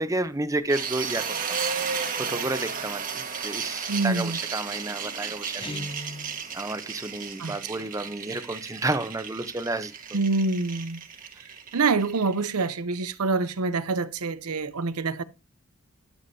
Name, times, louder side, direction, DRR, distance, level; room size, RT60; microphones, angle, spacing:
voice 1, 0.0-1.6 2.2-5.9 6.5-9.9, right 2 dB, 15° right, 0.7 m, -31 dB
sound 1, 0.7-12.7, right 6 dB, 40° right, 1.3 m, -34 dB
voice 2, 3.9-4.4 7.4-7.6 10.1-11.0 11.7-15.2, right 3 dB, 85° right, 0.7 m, -26 dB
Guitar, 5.6-6.4, left 1 dB, 25° left, 0.7 m, -37 dB
12.5 x 7.1 x 2.7 m
head